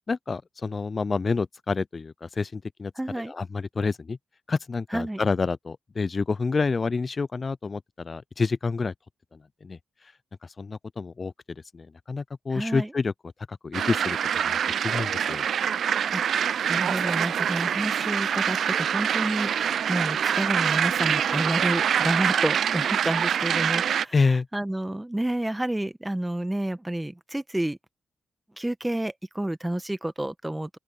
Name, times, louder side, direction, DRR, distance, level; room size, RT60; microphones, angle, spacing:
voice 1, 0.1-4.2 4.5-8.9 9.3-10.1 10.4-11.3 11.7-14.2 14.4-15.5 24.1-24.5, left 4 dB, 40° left, 0.5 m, -28 dB
voice 2, 3.0-3.3 4.9-5.2 12.5-12.9 16.1-16.2 16.7-24.1 24.5-27.8 28.6-30.8, right 1 dB, 10° right, 1.8 m, -30 dB
sound 1, 13.7-24.1, right 8 dB, 70° right, 0.6 m, -25 dB
open air
supercardioid pair, 50°, 0 cm